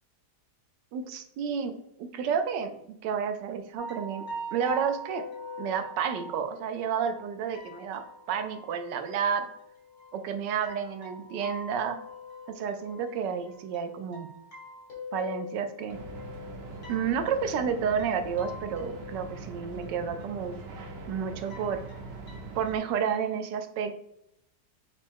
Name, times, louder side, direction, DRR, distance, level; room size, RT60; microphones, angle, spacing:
voice 1, 0.9-1.7 2.0-2.7 3.0-4.2 4.5-5.2 5.6-9.5 10.1-12.0 12.6-14.3 15.1-16.0 16.9-20.6 21.1-21.8 22.5-23.9, right 7 dB, 90° right, 8 dB, 1.3 m, -30 dB
sound 1, 3.8-23.3, left 1 dB, 60° left, 2.0 m, -44 dB
sound 2, 15.9-22.8, right 3 dB, 70° right, 0.6 m, -42 dB
5.9 x 2.1 x 4.3 m, 0.76 s
omnidirectional pair, 1.8 m